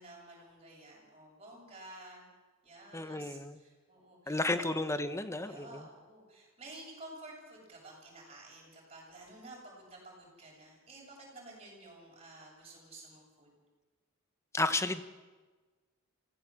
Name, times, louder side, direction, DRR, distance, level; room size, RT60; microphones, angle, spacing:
voice 1, 0.0-2.3 2.6-4.8 5.4-13.5, right 2 dB, 30° right, -2 dB, 7.6 m, -52 dB
voice 2, 2.9-3.6 4.3-5.8 14.5-15.0, left 2 dB, 15° left, 11 dB, 1.0 m, -32 dB
25.5 x 16.5 x 7.7 m, 1.3 s
head